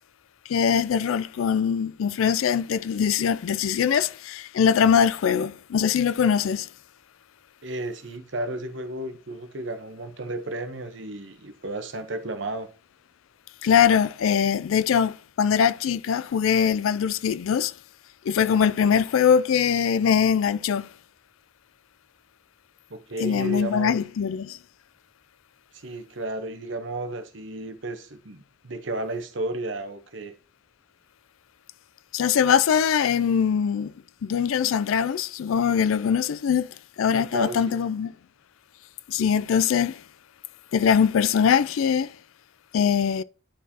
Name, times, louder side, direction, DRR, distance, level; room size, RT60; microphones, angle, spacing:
voice 1, 0.5-6.7 13.6-17.7 18.3-20.9 23.2-24.6 32.1-33.9 34.2-38.1 39.1-40.0 40.7-42.2 42.7-43.2, left 7 dB, 80° left, 0.3 m, -22 dB
voice 2, 7.6-12.7 18.9-19.0 22.9-24.0 25.7-30.3 37.1-37.8, right 2 dB, 65° right, 0.9 m, -33 dB
10.0 x 4.6 x 2.8 m
head